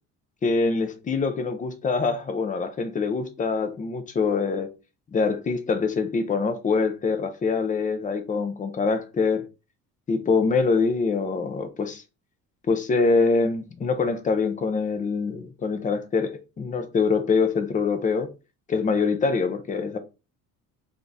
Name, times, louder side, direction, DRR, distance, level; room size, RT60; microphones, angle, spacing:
voice 1, 0.4-4.7 5.1-9.4 10.1-12.0 12.7-18.3 18.7-20.0, left 4 dB, 25° left, 0.6 m, -24 dB
3.6 x 3.5 x 3.9 m
cardioid pair, 165°, 34 cm